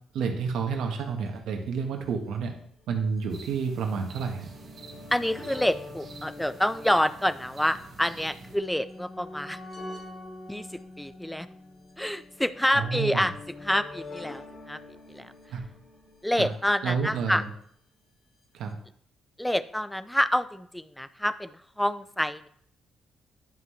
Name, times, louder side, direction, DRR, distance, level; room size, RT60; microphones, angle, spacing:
voice 1, 0.1-2.5 2.9-4.5 12.7-13.3 15.5-15.6 16.4-16.5 16.8-17.5 18.5-18.8, right 5 dB, 80° right, 3 dB, 1.4 m, -30 dB
sound 1, 1.3-1.4 2.2-17.5 18.4-18.5 18.7-18.8, left 2 dB, 50° left, 2.3 m, -46 dB
sound 2, 3.3-8.6, right 4 dB, 55° right, 1.4 m, -47 dB
voice 2, 5.1-9.6 10.5-10.7 11.0-11.5 12.0-13.3 13.6-14.8 15.1-15.3 16.2-17.4 19.4-22.5, equal, 5° left, 14 dB, 0.5 m, -27 dB
10.5 x 5.8 x 3.3 m, 0.63 s
cardioid pair, 90°, 0 cm